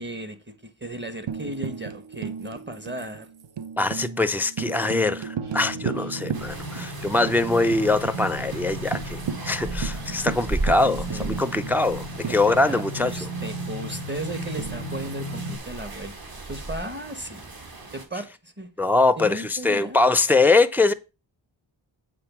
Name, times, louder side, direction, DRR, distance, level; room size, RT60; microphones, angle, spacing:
voice 1, 0.0-3.3 10.0-10.3 11.1-11.3 12.2-17.5 17.9-18.7 19.2-20.0, right 1 dB, 20° right, 1.1 m, -36 dB
Tambourine, 1.3-7.0 7.3-7.4 7.7-8.2 8.5-8.6 8.9-13.1 14.6-15.6, right 7 dB, 65° right, 0.8 m, -35 dB
voice 2, 3.8-13.3 18.8-20.9, left 3 dB, 5° right, 0.4 m, -22 dB
sound 1, 5.4-15.6, right 1 dB, 80° right, 2.6 m, -35 dB
sound 2, 6.3-18.1, right 2 dB, 45° right, 1.8 m, -36 dB
7.8 x 3.7 x 5.9 m
wide cardioid pair, 70°, 49 cm